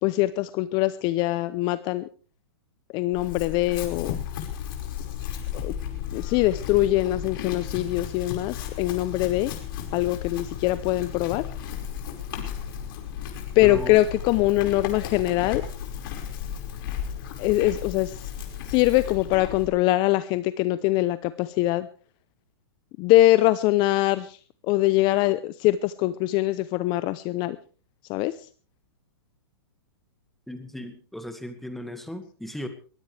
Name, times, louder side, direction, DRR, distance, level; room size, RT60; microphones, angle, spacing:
voice 1, 0.0-2.0 2.9-4.2 5.6-5.7 6.1-9.5 9.9-11.4 13.6-15.6 17.4-18.2 18.7-21.9 23.0-24.4 24.7-27.6 28.1-28.3, left 16 dB, 35° left, 15 dB, 0.7 m, -23 dB
Chewing mastication / Livestock farm animals working animals, 3.1-19.7, left 9 dB, 55° left, 5.2 m, -34 dB
voice 2, 13.6-14.0 30.5-32.7, left 1 dB, ahead, 8 dB, 2.0 m, -36 dB
21.5 x 16.5 x 3.4 m, 0.39 s
hypercardioid pair, 130°, 14 cm